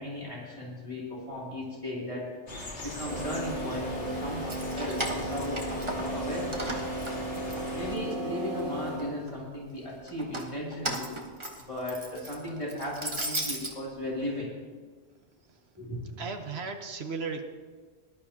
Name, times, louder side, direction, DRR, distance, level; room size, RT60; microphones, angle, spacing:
voice 1, 0.0-2.3 2.8-5.6 5.9-6.7 7.7-11.1 11.6-14.5 15.8-16.0, left 1 dB, 25° left, -6 dB, 2.9 m, -36 dB
sound 1, 2.5-8.0, left 2 dB, 65° left, 2.1 m, -40 dB
sound 2, 3.1-9.4, right 1 dB, 50° right, 1.7 m, -35 dB
Keys jangling, 4.3-6.2 6.5-8.1 8.6-9.3 10.1-13.7, right 1 dB, 25° right, 1.3 m, -36 dB
voice 2, 16.2-17.4, right 4 dB, 70° right, 6 dB, 1.3 m, -35 dB
19.5 x 11.5 x 2.9 m, 1.5 s
omnidirectional pair, 1.1 m